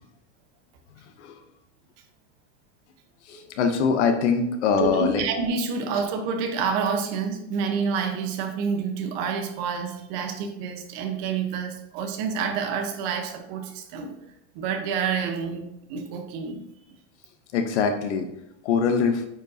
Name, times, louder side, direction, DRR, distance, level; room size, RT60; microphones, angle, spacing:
voice 1, 3.3-5.2 17.5-18.3 18.6-19.2, left 5 dB, 70° left, 6 dB, 0.9 m, -23 dB
voice 2, 4.8-14.1 14.5-16.6, right 5 dB, 40° right, 5 dB, 1.0 m, -28 dB
9.0 x 5.2 x 2.7 m, 0.81 s
supercardioid pair, 165°, 36 cm